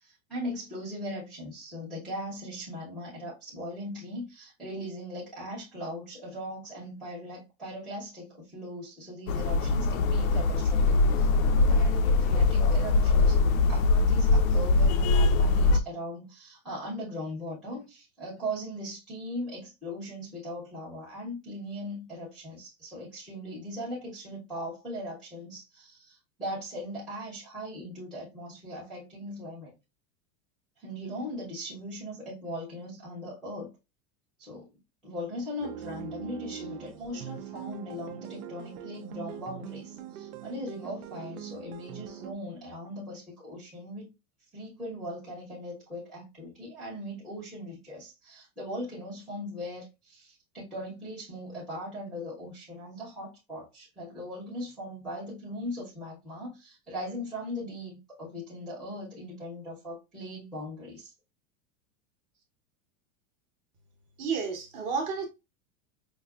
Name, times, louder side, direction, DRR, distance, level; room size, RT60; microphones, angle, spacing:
voice 1, 0.0-11.3 11.7-29.7 30.8-33.7 34.4-34.7 35.0-44.1 44.5-61.1, equal, ahead, 0.5 m, -39 dB
sound 1, 9.3-15.8, left 3 dB, 70° left, 0.5 m, -22 dB
sound 2, 35.6-42.3, right 9 dB, 85° right, 0.6 m, -42 dB
voice 2, 64.2-65.3, right 5 dB, 30° right, 0.8 m, -31 dB
4.7 x 2.6 x 2.3 m
supercardioid pair, 175°, 44 cm